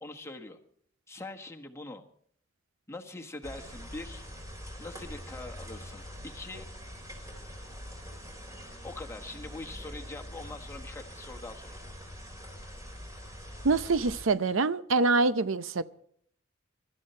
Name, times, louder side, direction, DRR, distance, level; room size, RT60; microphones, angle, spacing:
voice 1, 0.0-0.6 1.1-2.0 2.9-4.2 4.8-6.7 8.8-11.8, left 2 dB, 15° left, 1.5 m, -43 dB
sound 1, 3.4-14.2, equal, 15° right, 4.0 m, -44 dB
voice 2, 13.6-15.8, right 3 dB, 80° right, 0.7 m, -25 dB
23.5 x 13.0 x 4.4 m
head